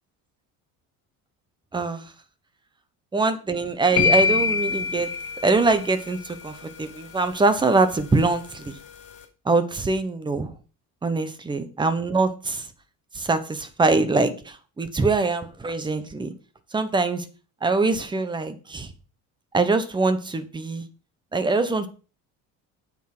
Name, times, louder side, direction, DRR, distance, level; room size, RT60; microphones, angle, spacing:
voice 1, 1.7-2.1 3.1-5.1 5.4-8.8 9.4-10.5 11.0-12.7 13.1-16.3 16.7-17.2 17.6-18.9 19.5-20.9 21.3-21.9, right 3 dB, 15° right, 10 dB, 1.2 m, -23 dB
sound 1, 4.0-6.1, left 5 dB, 45° left, 4.6 m, -24 dB
9.3 x 7.4 x 6.1 m, 0.35 s
cardioid pair, 160°, 33 cm